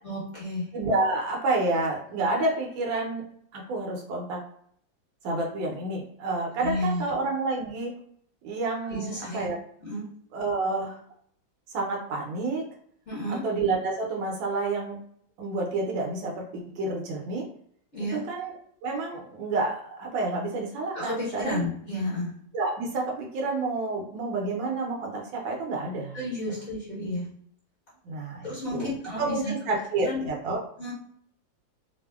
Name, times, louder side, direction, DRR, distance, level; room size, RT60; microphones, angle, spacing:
voice 1, 0.0-0.7 6.6-7.1 8.8-9.5 9.8-10.1 13.1-13.4 17.9-18.2 20.9-22.3 26.1-27.3 28.4-29.5 30.0-30.2 30.8-30.9, left 1 dB, 40° left, -9 dB, 1.4 m, -32 dB
voice 2, 0.7-3.2 3.5-4.4 5.2-7.9 8.4-9.6 10.3-11.0 11.7-12.6 13.3-15.0 15.4-17.5 18.1-18.5 18.8-21.7 22.5-26.2 28.0-28.5 28.7-28.9 29.2-30.6, right 3 dB, 75° right, 0 dB, 1.4 m, -29 dB
3.3 x 2.0 x 2.3 m, 0.65 s
omnidirectional pair, 2.1 m